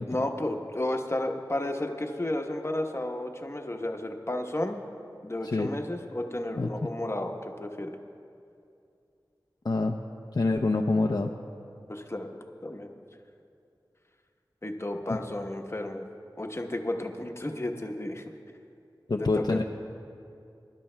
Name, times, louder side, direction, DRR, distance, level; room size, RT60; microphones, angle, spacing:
voice 1, 0.1-4.8 5.2-8.0 11.9-13.0 14.6-16.0 16.4-18.2 19.2-19.6, left 1 dB, 35° left, 3 dB, 1.0 m, -32 dB
voice 2, 6.6-6.9 9.6-10.0 10.3-11.3 15.1-15.2 19.1-19.6, left 3 dB, 55° left, 1 dB, 0.5 m, -26 dB
24.0 x 11.5 x 2.2 m, 2.5 s
wide cardioid pair, 45°, 8 cm